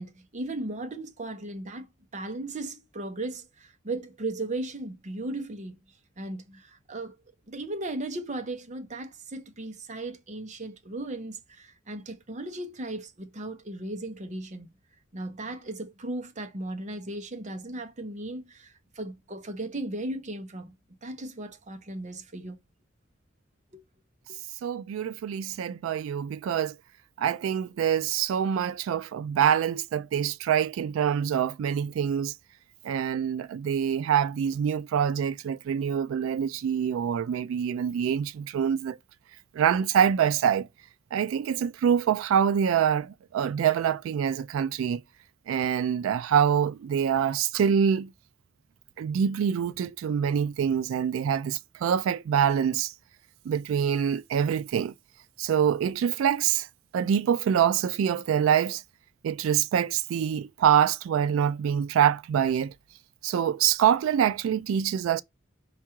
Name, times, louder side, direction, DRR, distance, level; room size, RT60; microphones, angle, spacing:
voice 1, 0.0-5.8 6.2-7.1 7.5-14.7 15.1-20.7 21.0-22.6 23.7-23.8 24.3-24.4, right 2 dB, 35° right, 0.8 m, -36 dB
voice 2, 24.6-26.7 27.2-32.3 32.8-39.0 39.5-40.7 41.1-45.0 45.5-48.1 49.0-52.9 53.5-54.9 55.4-56.7 56.9-58.8 59.2-62.7 63.2-65.2, right 8 dB, 85° right, 0.3 m, -25 dB
4.6 x 2.5 x 4.4 m
head